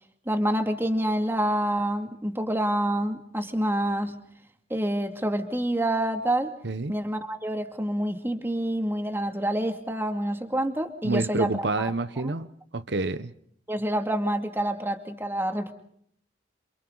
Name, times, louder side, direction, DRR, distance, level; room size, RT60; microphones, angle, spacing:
voice 1, 0.3-4.2 4.7-6.5 6.9-11.9 12.2-12.3 13.7-15.7, right 1 dB, 15° right, 2.4 m, -27 dB
voice 2, 11.0-13.3, right 2 dB, 65° right, 1.0 m, -28 dB
29.0 x 28.0 x 4.0 m
head